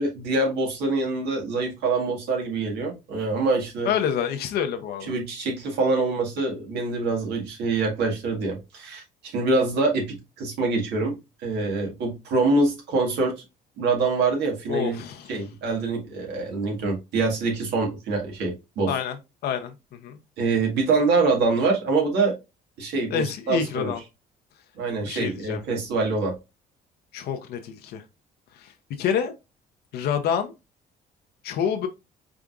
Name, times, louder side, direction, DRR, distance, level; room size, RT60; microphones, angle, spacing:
voice 1, 0.0-3.9 5.1-9.0 9.3-11.2 11.4-13.3 13.8-15.0 15.3-18.9 20.4-22.3 22.8-23.9 24.7-26.3, right 3 dB, 80° right, 1.8 m, -25 dB
voice 2, 3.8-5.1 14.7-15.4 18.8-19.2 19.4-20.2 23.1-24.0 25.1-25.6 27.1-28.0 28.5-29.3 29.9-30.5 31.4-31.9, left 8 dB, 70° left, 0.7 m, -27 dB
4.9 x 3.5 x 2.4 m
cardioid pair, 110°, 17 cm